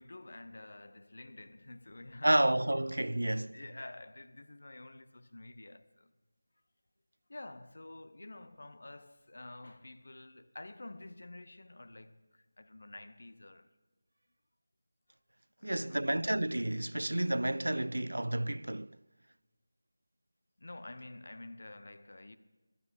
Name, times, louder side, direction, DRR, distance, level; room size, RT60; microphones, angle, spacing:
voice 1, 0.0-2.4 3.5-6.1 7.3-13.7 15.6-16.1 20.6-22.4, left 2 dB, 60° left, 0.8 m, -49 dB
voice 2, 2.2-3.6 15.6-19.0, right 1 dB, 75° right, 0.3 m, -30 dB
21.0 x 9.9 x 4.4 m
figure-of-eight pair, 165°, 0 cm